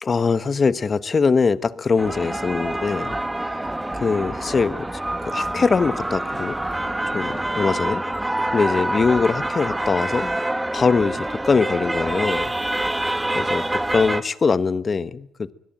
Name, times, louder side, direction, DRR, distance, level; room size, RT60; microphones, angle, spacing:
voice 1, 0.0-3.6 3.9-4.8 5.2-6.5 7.1-8.0 8.5-10.3 10.7-12.5 13.3-15.5, left 5 dB, 35° left, 1.2 m, -22 dB
sound 1, 2.0-14.2, right 1 dB, 10° right, 1.5 m, -26 dB
23.5 x 17.5 x 9.1 m
cardioid pair, 90°, 0 cm